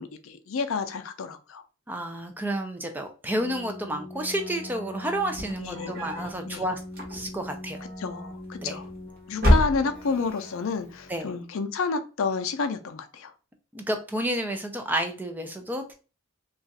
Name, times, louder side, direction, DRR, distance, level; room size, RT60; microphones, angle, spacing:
voice 1, 0.0-1.6 5.6-6.1 6.4-6.6 8.0-8.9 9.3-13.3, left 4 dB, 70° left, 9 dB, 0.4 m, -30 dB
voice 2, 1.9-6.8 7.1-7.8 8.6-8.7 11.1-11.3 13.7-15.9, right 1 dB, 10° right, 5 dB, 0.3 m, -30 dB
Keyboard (musical), 3.3-11.4, left 1 dB, 10° left, 0.9 m, -42 dB
sound 1, 5.3-6.4 6.9-7.5 8.5-9.0 9.3-10.3, equal, 45° right, 1.1 m, -25 dB
2.4 x 2.3 x 3.9 m, 0.34 s
head